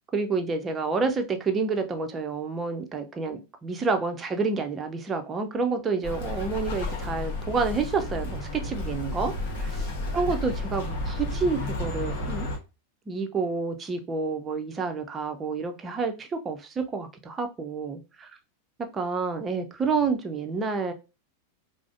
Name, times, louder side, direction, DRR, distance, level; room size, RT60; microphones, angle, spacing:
voice 1, 0.1-9.8 10.1-12.5 13.1-18.3 18.9-20.9, right 4 dB, 20° right, 0.6 m, -29 dB
Bird, 6.0-12.6, left 2 dB, 50° left, 1.1 m, -32 dB
4.7 x 2.0 x 2.5 m
figure-of-eight pair, 90°, 0 cm